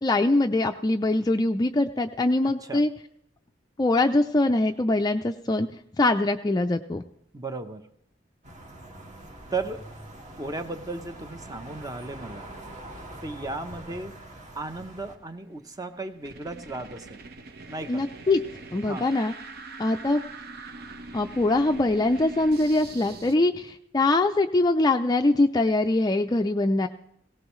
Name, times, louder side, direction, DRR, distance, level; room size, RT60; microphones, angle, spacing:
voice 1, 0.0-2.9 3.8-5.7 6.0-7.0 17.9-18.4 18.7-19.3 19.8-20.2 21.1-26.9, left 2 dB, 20° left, 5 dB, 0.4 m, -23 dB
voice 2, 7.3-7.9 9.5-9.8 10.4-12.5 13.2-14.2 14.5-17.2 17.7-18.0 18.8-19.1, right 3 dB, 20° right, 9 dB, 0.8 m, -35 dB
sound 1, 8.4-15.2, right 1 dB, 40° right, 2.0 m, -44 dB
sound 2, 15.2-23.4, right 3 dB, 55° right, 0.9 m, -43 dB
18.5 x 17.5 x 3.1 m, 0.73 s
head